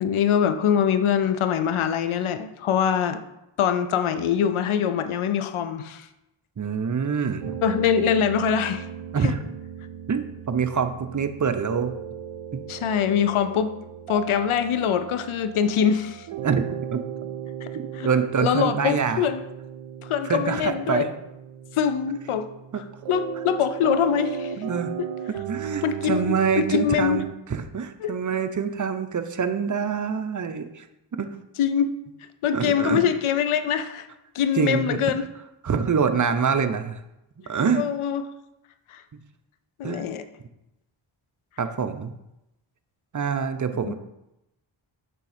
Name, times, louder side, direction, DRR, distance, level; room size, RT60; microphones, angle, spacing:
voice 1, 0.0-3.2 3.6-6.1 7.6-8.9 9.2-9.3 12.7-13.7 14.1-16.3 17.6-17.7 17.9-18.1 18.4-19.4 20.0-21.1 21.7-22.5 22.8-24.5 25.0-25.1 25.8-27.2 28.0-28.1 31.6-32.0 32.4-34.1 34.3-35.3 37.7-38.2 38.9-39.0 39.8-40.2 43.8-43.9, left 8 dB, 80° left, 10 dB, 0.6 m, -23 dB
voice 2, 6.6-7.6 9.1-9.4 10.1-11.9 12.5-12.6 16.4-17.0 17.7-19.2 20.3-21.1 22.7-22.8 24.6-24.9 25.5-30.8 31.1-31.3 32.5-33.0 34.5-35.0 35.6-37.0 37.4-37.8 39.1-39.2 39.8-40.1 41.6-42.1 43.1-43.9, right 6 dB, 40° right, 8 dB, 0.6 m, -25 dB
sound 1, 7.4-27.3, right 9 dB, 75° right, 0.6 m, -36 dB
6.7 x 3.6 x 5.0 m, 0.88 s
cardioid pair, 55°, 49 cm